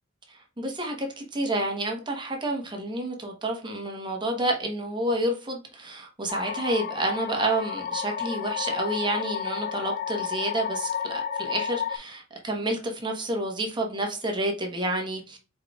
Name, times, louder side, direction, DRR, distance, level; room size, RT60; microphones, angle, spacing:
voice 1, 0.3-15.4, right 1 dB, 20° right, 2 dB, 1.0 m, -29 dB
sound 1, 6.3-12.0, left 7 dB, 45° left, 0.4 m, -31 dB
4.8 x 4.5 x 2.3 m, 0.33 s
head